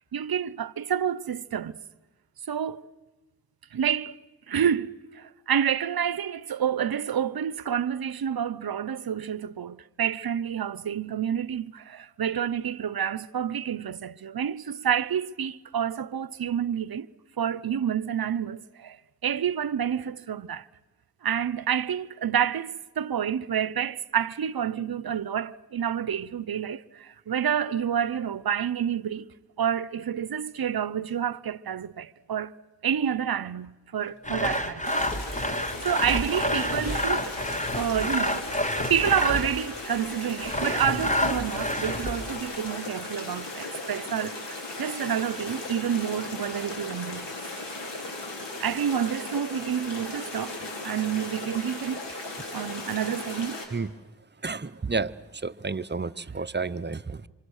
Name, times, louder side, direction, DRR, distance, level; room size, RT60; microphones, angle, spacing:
voice 1, 0.1-1.8 2.5-2.8 3.7-4.1 4.5-17.1 17.4-19.0 19.2-20.6 21.2-29.3 29.6-32.5 32.8-35.0 35.3-35.5 35.8-37.4 37.8-38.5 38.8-47.3 48.6-50.6 50.8-52.2 52.5-53.6, right 8 dB, 60° right, 0.8 m, -29 dB
sound 1, 34.0-36.0 36.4-36.5 36.7-39.9 40.3-40.4, left 3 dB, 65° left, 2.7 m, -51 dB
Sawing, 34.2-39.6 40.4-42.4, left 1 dB, 20° left, 1.9 m, -29 dB
sound 2, 34.8-53.7, left 2 dB, 90° left, 4.2 m, -37 dB
voice 2, 54.4-57.3, right 4 dB, 25° right, 0.7 m, -31 dB
26.5 x 25.0 x 6.5 m
cardioid pair, 40°, 41 cm